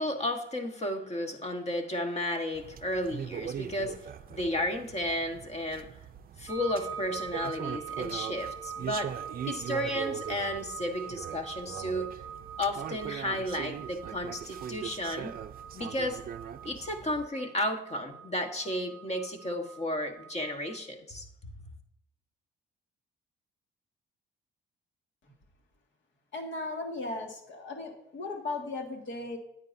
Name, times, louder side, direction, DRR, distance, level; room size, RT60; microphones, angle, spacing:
voice 1, 0.0-5.9 6.4-9.1 9.4-12.1 12.6-15.3 15.7-16.2 16.6-21.3, left 1 dB, 35° left, 5 dB, 1.3 m, -33 dB
sound 1, 2.5-17.3, right 9 dB, 50° right, 0.5 m, -41 dB
sound 2, 6.5-20.8, right 7 dB, 10° right, 1.8 m, -43 dB
voice 2, 26.3-29.4, left 2 dB, 70° left, 3 dB, 1.9 m, -36 dB
9.4 x 9.0 x 2.6 m, 0.76 s
cardioid pair, 90°, 20 cm